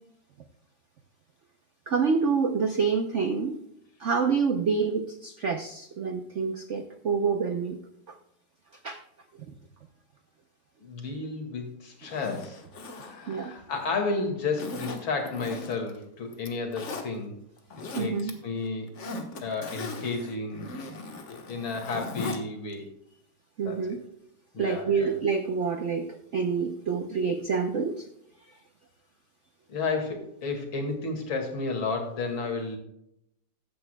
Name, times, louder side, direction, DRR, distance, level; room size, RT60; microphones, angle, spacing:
voice 1, 1.9-3.6 4.0-7.8 8.8-9.0 9.4-9.5 13.3-13.5 17.9-18.4 23.6-24.0 24.6-28.1, right 5 dB, 70° right, 7 dB, 0.7 m, -27 dB
voice 2, 10.8-12.6 12.9-17.4 17.8-18.9 19.4-20.7 21.3-22.9 23.7-24.0 24.5-25.1 29.7-32.8, left 3 dB, 80° left, 3 dB, 2.8 m, -32 dB
Zipper (clothing), 12.0-14.0 14.6-16.0 16.3-17.1 17.6-18.3 18.6-22.4 22.7-22.8, left 3 dB, 40° left, 1.3 m, -38 dB
14.5 x 9.9 x 2.2 m, 0.78 s
omnidirectional pair, 2.2 m